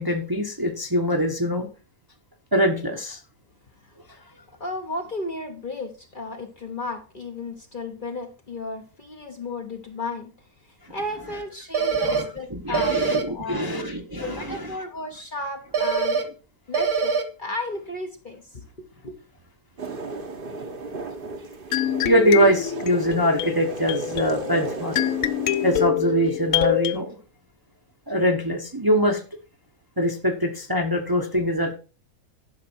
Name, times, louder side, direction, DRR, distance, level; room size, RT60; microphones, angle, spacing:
voice 1, 0.0-1.7 2.5-3.2 12.0-14.7 22.0-25.0 25.6-27.2 28.1-29.2 30.0-31.7, equal, 15° right, 3 dB, 1.0 m, -23 dB
voice 2, 4.6-10.3 10.9-13.0 13.3-13.6 14.1-16.2 16.7-19.2, left 2 dB, 35° left, 4 dB, 1.2 m, -34 dB
sound 1, 11.7-12.2 12.7-13.2 15.7-16.2 16.7-17.2, right 5 dB, 70° right, 1.9 m, -23 dB
sound 2, 19.8-25.8, right 3 dB, 40° right, 1.2 m, -35 dB
sound 3, 21.7-27.0, left 13 dB, 70° left, 1.0 m, -26 dB
11.5 x 6.0 x 4.5 m, 0.33 s
omnidirectional pair, 1.6 m